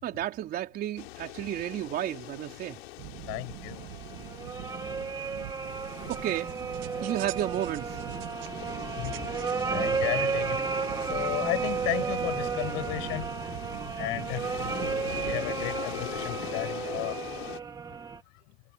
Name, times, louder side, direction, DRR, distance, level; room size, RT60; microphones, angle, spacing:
voice 1, 0.0-2.8 6.1-6.5 7.0-8.0, right 12 dB, 30° right, 3.9 m, -32 dB
sound 1, 1.0-17.6, left 19 dB, 85° left, 3.4 m, -42 dB
sound 2, 3.0-15.7, right 19 dB, 55° right, 2.2 m, -43 dB
voice 2, 3.3-3.9 4.5-4.9 8.9-9.3 9.7-10.7 11.0-13.3 14.0-14.5 15.2-17.4, left 30 dB, 50° left, 5.0 m, -34 dB
sound 3, 3.8-18.2, right 5 dB, 15° right, 1.1 m, -33 dB
supercardioid pair, 170°, 30 cm